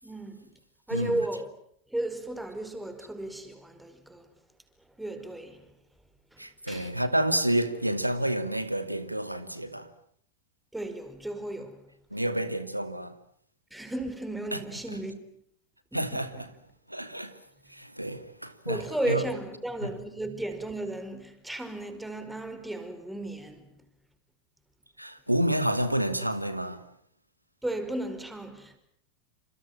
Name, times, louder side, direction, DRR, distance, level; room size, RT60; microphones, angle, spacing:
voice 1, 0.0-0.5 0.9-1.5 1.9-4.3 5.0-5.7 6.3-6.9 10.7-11.9 13.7-15.2 15.9-16.2 18.7-23.7 27.6-28.8, right 1 dB, 5° right, 5.0 m, -34 dB
voice 2, 6.4-9.9 12.1-13.1 14.5-14.6 14.9-15.0 15.9-16.5 16.9-17.4 17.7-19.3 19.8-19.9 25.0-26.8, right 1 dB, 90° right, 2.5 m, -29 dB
29.0 x 27.5 x 7.4 m
figure-of-eight pair, 90°, 0 cm